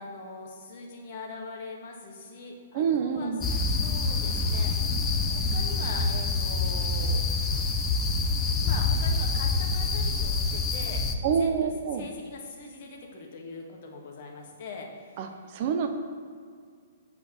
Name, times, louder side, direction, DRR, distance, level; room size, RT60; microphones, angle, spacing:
voice 1, 0.0-5.1 5.5-7.2 8.6-15.3, left 3 dB, 45° left, 0 dB, 1.6 m, -42 dB
voice 2, 2.7-3.4 11.2-12.1 15.2-15.3 15.5-15.9, right 6 dB, 40° right, 6 dB, 0.7 m, -26 dB
sound 1, 3.4-11.1, left 3 dB, 15° left, 0.6 m, -26 dB
8.1 x 4.6 x 6.6 m, 2.1 s
figure-of-eight pair, 120°, 0 cm